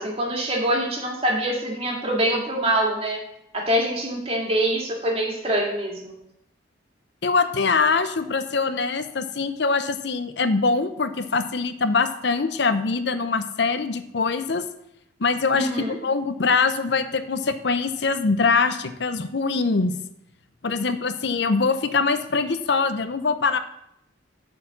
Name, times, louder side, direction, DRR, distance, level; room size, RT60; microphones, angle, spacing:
voice 1, 0.0-3.2 3.5-6.1 15.5-16.0, right 1 dB, 30° right, -1 dB, 2.1 m, -24 dB
voice 2, 7.2-14.6 15.2-19.9 20.6-23.6, left 4 dB, 60° left, 10 dB, 0.7 m, -23 dB
8.4 x 4.5 x 7.4 m, 0.79 s
head